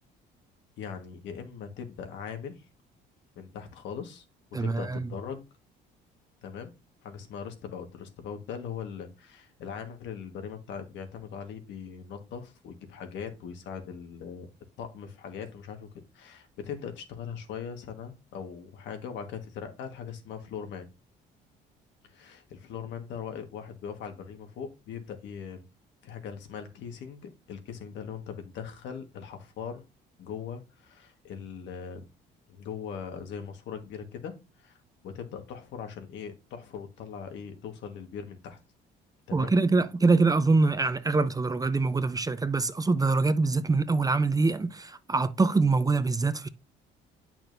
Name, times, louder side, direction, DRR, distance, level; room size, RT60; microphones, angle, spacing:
voice 1, 0.8-2.6 3.3-4.2 4.6-5.4 6.4-6.7 7.0-14.5 14.8-15.9 16.1-20.9 22.0-25.6 26.0-29.8 30.2-32.1 32.5-34.8 35.0-38.6 39.3-39.5, left 7 dB, 75° left, 1.6 m, -40 dB
voice 2, 4.5-5.1 39.3-46.5, right 3 dB, 20° right, 0.6 m, -24 dB
8.7 x 6.0 x 2.6 m
supercardioid pair, 85°, 19 cm